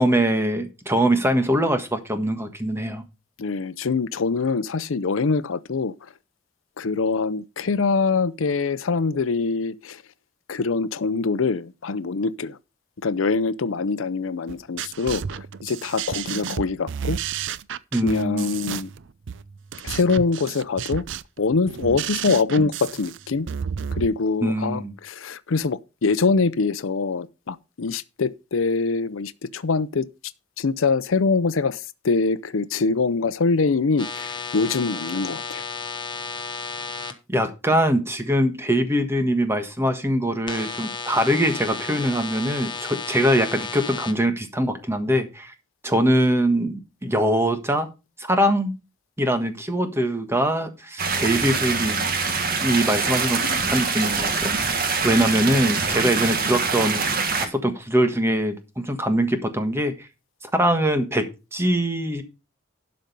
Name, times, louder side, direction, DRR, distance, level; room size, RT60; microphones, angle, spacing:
voice 1, 0.0-3.0 17.9-18.6 24.4-24.9 37.3-45.5 45.8-47.9 48.2-48.7 49.2-52.1 52.6-57.0 57.4-60.1 60.5-61.2 61.5-62.2, right 1 dB, 15° right, 1.4 m, -23 dB
voice 2, 3.4-5.9 6.8-10.0 10.5-12.6 13.0-17.2 18.0-18.9 19.8-21.1 21.4-23.5 24.0-30.1 30.6-35.6, left 4 dB, 75° left, 0.6 m, -24 dB
sound 1, 14.5-24.1, right 7 dB, 65° right, 0.5 m, -31 dB
sound 2, 34.0-37.1 40.5-44.1, left 4 dB, 25° left, 1.2 m, -33 dB
sound 3, 51.0-57.5, right 4 dB, 45° right, 1.8 m, -24 dB
12.0 x 5.2 x 5.4 m
head